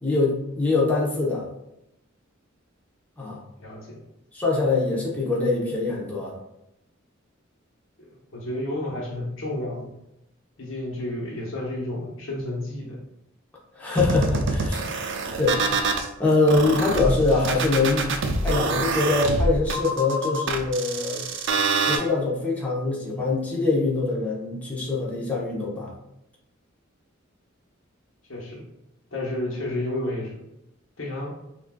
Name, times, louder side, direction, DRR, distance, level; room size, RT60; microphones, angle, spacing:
voice 1, 0.0-1.5 3.2-3.4 4.3-6.3 13.8-14.8 15.4-15.9 16.2-18.1 18.4-21.2 21.9-25.9, left 3 dB, 5° left, -5 dB, 0.8 m, -23 dB
voice 2, 3.6-4.0 8.1-9.9 10.6-13.0 28.3-28.7 29.1-30.4 31.0-31.3, left 1 dB, 75° left, -2 dB, 1.0 m, -31 dB
sound 1, 14.0-16.1 16.5-22.0, right 3 dB, 60° right, 0.5 m, -25 dB
5.9 x 2.5 x 2.3 m, 0.87 s
head